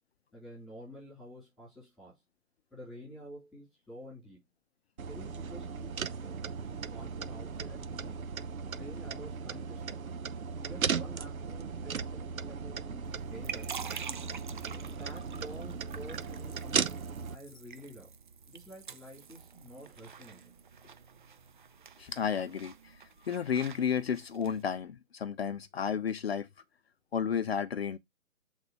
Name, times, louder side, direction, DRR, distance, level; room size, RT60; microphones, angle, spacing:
voice 1, 0.3-2.1 2.7-4.4 5.1-8.3 8.7-10.0 10.6-13.9 14.7-17.1 17.3-18.2 18.5-20.5, equal, ahead, 4.0 m, -49 dB
sound 1, 5.0-17.3, right 6 dB, 80° right, 0.8 m, -37 dB
sound 2, 13.0-24.6, right 7 dB, 40° right, 0.6 m, -47 dB
voice 2, 22.0-26.5 27.1-28.0, left 7 dB, 50° left, 0.6 m, -32 dB
7.9 x 4.0 x 3.1 m
hypercardioid pair, 150°, 41 cm